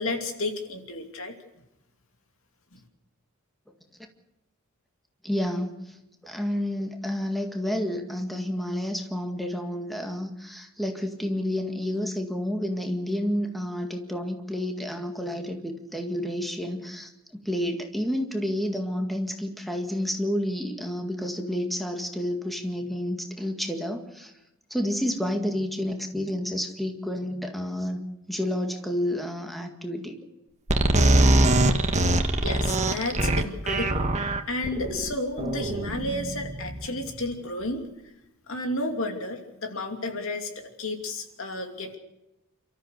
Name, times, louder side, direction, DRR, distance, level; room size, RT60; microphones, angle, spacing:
voice 1, 0.0-1.3 32.4-34.1 34.5-37.8 38.5-42.0, left 2 dB, 65° left, 4 dB, 2.9 m, -32 dB
voice 2, 5.2-6.0 6.2-24.3 24.7-28.0 28.3-30.2, left 1 dB, ahead, 3 dB, 1.9 m, -30 dB
sound 1, 30.7-37.1, right 1 dB, 35° right, 1.5 m, -23 dB
29.0 x 13.5 x 6.7 m, 0.94 s
head